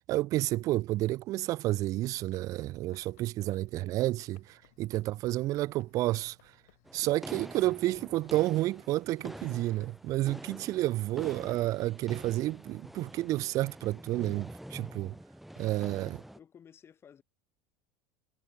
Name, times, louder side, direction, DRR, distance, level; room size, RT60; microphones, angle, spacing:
voice 1, 0.1-6.4 6.9-15.2 15.6-16.1, right 16 dB, 45° right, 0.4 m, -30 dB
Run, 1.2-13.5, left 18 dB, 80° left, 5.2 m, -67 dB
sound 1, 3.0-8.9, left 34 dB, 65° left, 6.0 m, -71 dB
sound 2, 6.9-16.4, right 1 dB, ahead, 1.9 m, -47 dB
voice 2, 15.8-17.2, left 8 dB, 30° left, 7.9 m, -55 dB
supercardioid pair, 105°, 8 cm